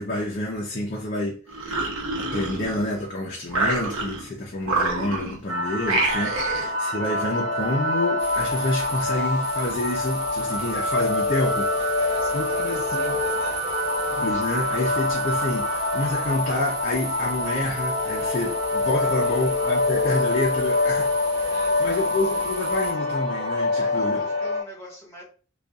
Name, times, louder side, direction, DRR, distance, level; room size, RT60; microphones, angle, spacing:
voice 1, 0.0-11.9 12.3-13.2 14.1-21.5 21.8-24.2, left 2 dB, 40° left, 0.5 m, -28 dB
sound 1, 1.5-3.0 3.5-4.3 4.6-5.4 5.8-6.7, right 2 dB, 90° right, 0.8 m, -27 dB
sound 2, 5.5-24.6, left 2 dB, 65° right, 1.2 m, -25 dB
sound 3, 8.2-22.9, right 3 dB, 50° right, 0.7 m, -38 dB
voice 2, 11.9-13.7 19.2-19.4 21.5-22.1 23.7-25.2, left 1 dB, 10° left, 1.4 m, -43 dB
2.6 x 2.3 x 2.3 m
head